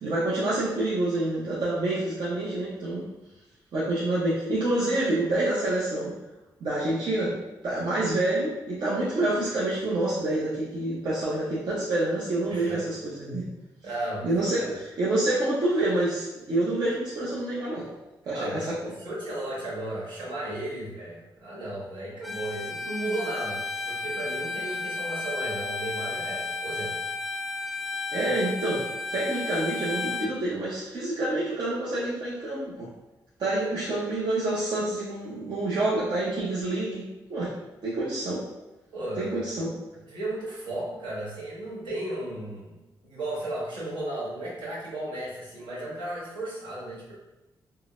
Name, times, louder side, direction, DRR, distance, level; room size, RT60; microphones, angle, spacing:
voice 1, 0.0-3.1 3.7-6.1 6.6-7.4 7.6-13.5 14.2-17.9 18.3-18.8 28.1-32.9 33.4-37.5 37.8-38.4 39.2-39.8, right 2 dB, 60° right, -8 dB, 0.8 m, -27 dB
voice 2, 13.8-14.3 14.6-14.8 18.3-18.7 19.0-26.9 33.5-33.7 38.9-39.5 40.0-42.7 43.0-47.1, right 1 dB, 80° right, -7 dB, 1.5 m, -35 dB
Bowed string instrument, 22.2-30.3, left 3 dB, ahead, 0.3 m, -33 dB
3.7 x 2.1 x 2.5 m, 1.0 s
cardioid pair, 80°, 8 cm